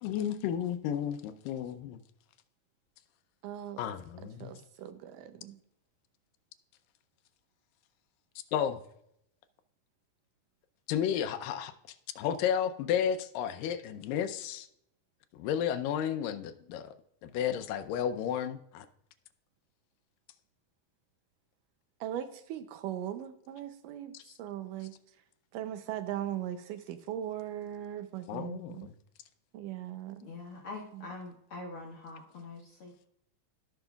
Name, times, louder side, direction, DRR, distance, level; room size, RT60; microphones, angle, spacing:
voice 1, 0.0-2.0 3.8-4.5 8.5-8.8 10.9-11.7 12.2-14.7 15.3-16.9 17.2-18.9 24.1-24.3 28.3-28.9, left 9 dB, 80° left, 10 dB, 2.3 m, -32 dB
voice 2, 3.4-3.8 4.4-5.6 22.0-24.1 24.4-24.9 25.5-28.9 29.5-30.3 30.9-31.1, right 11 dB, 80° right, 10 dB, 2.1 m, -39 dB
voice 3, 30.2-33.1, left 3 dB, 60° left, 0 dB, 1.4 m, -44 dB
17.0 x 5.9 x 2.3 m, 0.76 s
omnidirectional pair, 3.9 m